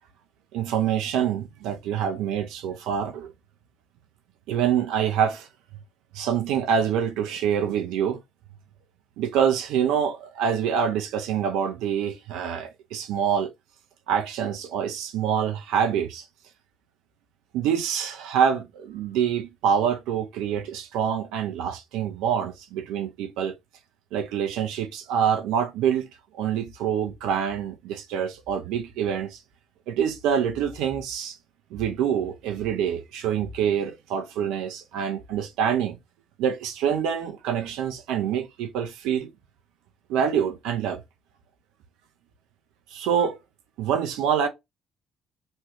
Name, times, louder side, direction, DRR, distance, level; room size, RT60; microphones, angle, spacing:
voice 1, 0.5-3.3 4.5-5.5 6.1-8.2 9.2-13.5 14.1-16.3 17.5-23.5 24.1-26.1 26.3-29.4 29.9-31.4 31.7-36.0 36.4-39.3 40.1-41.0 42.9-43.4 43.8-44.5, right 8 dB, 65° right, 0.6 m, -26 dB
3.2 x 2.4 x 3.1 m
figure-of-eight pair, 45°, 0 cm